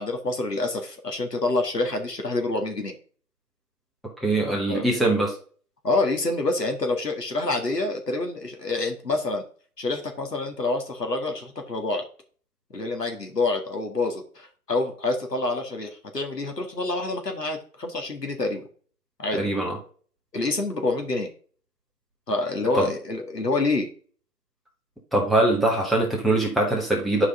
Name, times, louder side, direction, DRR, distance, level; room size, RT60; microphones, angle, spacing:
voice 1, 0.0-2.9 4.7-4.9 5.8-9.4 9.8-12.0 12.7-18.6 19.2-19.5 20.3-21.3 22.3-23.9, left 2 dB, 85° left, 3 dB, 2.0 m, -27 dB
voice 2, 4.2-5.3 19.3-19.8 22.7-22.9 25.1-27.3, right 2 dB, ahead, -3 dB, 0.6 m, -22 dB
10.0 x 4.8 x 3.7 m, 0.44 s
figure-of-eight pair, 170°, 47 cm